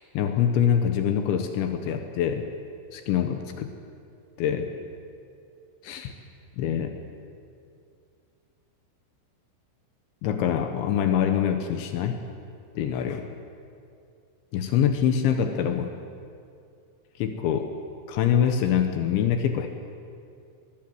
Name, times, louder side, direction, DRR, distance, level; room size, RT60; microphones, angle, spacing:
voice 1, 0.1-2.4 2.9-3.7 4.4-4.7 5.8-6.1 6.6-7.0 10.2-12.1 12.8-13.3 14.5-15.9 17.2-17.7 18.1-19.7, left 8 dB, 75° left, 7 dB, 3.3 m, -24 dB
23.5 x 20.0 x 7.8 m, 2.4 s
omnidirectional pair, 5.8 m